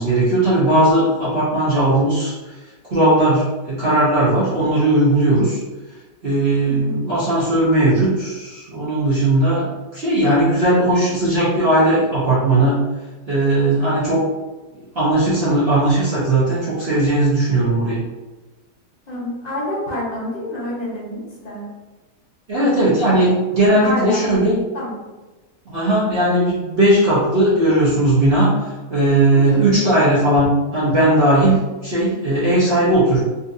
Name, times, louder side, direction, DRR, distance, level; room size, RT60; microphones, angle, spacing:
voice 1, 0.0-2.3 2.9-5.6 6.2-9.6 9.9-12.8 13.3-14.3 14.9-18.0 22.5-24.6 25.7-33.2, right 1 dB, 50° right, -9 dB, 0.8 m, -17 dB
voice 2, 6.6-7.0 19.1-21.6 23.8-24.4 24.7-25.0 29.3-29.7, left 1 dB, 30° left, -7 dB, 0.8 m, -27 dB
3.9 x 2.5 x 2.5 m, 1.2 s
omnidirectional pair, 1.9 m